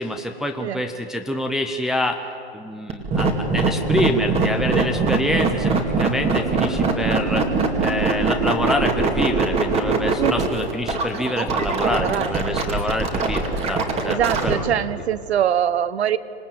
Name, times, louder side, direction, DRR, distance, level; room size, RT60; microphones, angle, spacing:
voice 1, 0.0-2.2 2.5-7.5 7.8-14.7, left 1 dB, ahead, 3 dB, 0.8 m, -26 dB
sound 1, 2.9-14.5, right 4 dB, 20° right, 2.4 m, -21 dB
voice 2, 11.8-12.3 14.0-16.2, right 10 dB, 70° right, 16 dB, 1.2 m, -23 dB
26.5 x 18.5 x 8.9 m, 2.6 s
hypercardioid pair, 140°, 33 cm